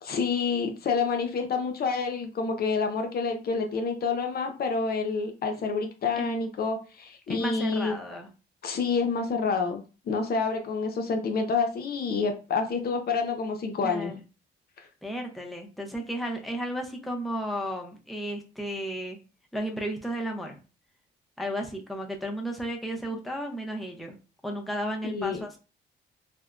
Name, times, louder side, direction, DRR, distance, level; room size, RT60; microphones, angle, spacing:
voice 1, 0.0-7.9 8.6-9.8 10.1-14.1 14.8-14.9 25.0-25.5, left 4 dB, 50° left, 4 dB, 0.5 m, -28 dB
voice 2, 6.2-6.5 7.3-8.3 13.8-14.2 15.0-19.2 19.5-20.6 21.4-24.2 24.4-25.6, right 1 dB, ahead, 1 dB, 0.6 m, -33 dB
3.3 x 2.0 x 2.4 m, 0.33 s
cardioid pair, 90°, 20 cm